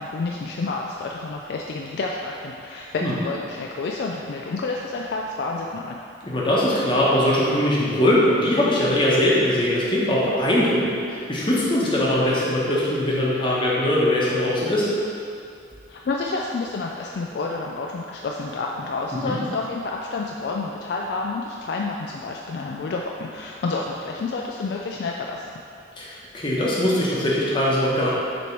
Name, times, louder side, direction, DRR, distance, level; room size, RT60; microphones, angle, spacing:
voice 1, 0.0-6.0 15.9-25.5, left 3 dB, 55° left, -1 dB, 0.3 m, -29 dB
voice 2, 6.2-14.9 19.2-19.4 26.0-28.1, left 1 dB, 25° left, -6 dB, 1.0 m, -21 dB
6.8 x 3.1 x 4.5 m, 2.5 s
head